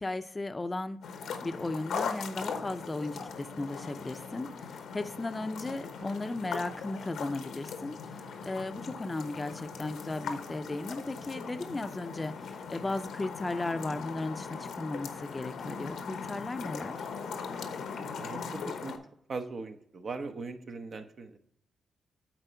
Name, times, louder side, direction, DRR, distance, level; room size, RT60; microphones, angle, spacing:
voice 1, 0.0-17.1, left 2 dB, 25° left, 10 dB, 0.5 m, -36 dB
sound 1, 1.0-19.0, left 5 dB, 90° left, 1.0 m, -40 dB
voice 2, 18.2-19.0 19.3-21.4, right 4 dB, 55° right, 6 dB, 0.9 m, -39 dB
9.0 x 4.1 x 5.7 m, 0.71 s
cardioid pair, 75°, 0 cm